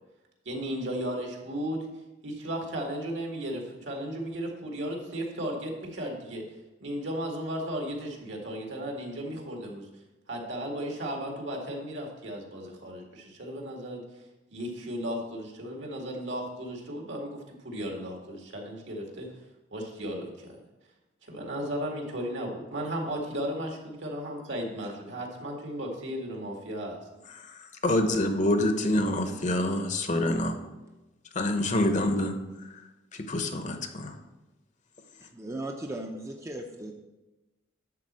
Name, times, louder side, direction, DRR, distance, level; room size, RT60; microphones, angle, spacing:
voice 1, 0.5-1.9 2.2-6.4 6.8-9.8 10.3-14.0 14.5-19.3 19.7-20.6 21.3-26.9, equal, 75° right, 0 dB, 2.2 m, -35 dB
voice 2, 27.8-30.5 31.3-32.3 33.1-34.1, left 1 dB, 40° left, 6 dB, 0.9 m, -26 dB
voice 3, 35.3-36.9, right 1 dB, 15° right, 2 dB, 0.6 m, -37 dB
10.5 x 4.3 x 7.5 m, 1.1 s
head